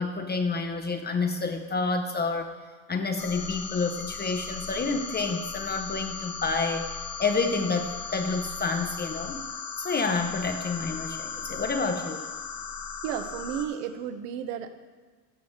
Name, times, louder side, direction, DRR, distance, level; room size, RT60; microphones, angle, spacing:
voice 1, 0.0-2.5 2.9-6.9 7.2-9.4 9.8-12.3, left 4 dB, 20° left, 5 dB, 0.8 m, -29 dB
sound 1, 3.2-13.7, left 6 dB, 45° left, 1.2 m, -37 dB
voice 2, 13.0-14.7, right 9 dB, 70° right, 9 dB, 1.0 m, -33 dB
13.5 x 6.2 x 3.7 m, 1.4 s
hypercardioid pair, 85°, 50 cm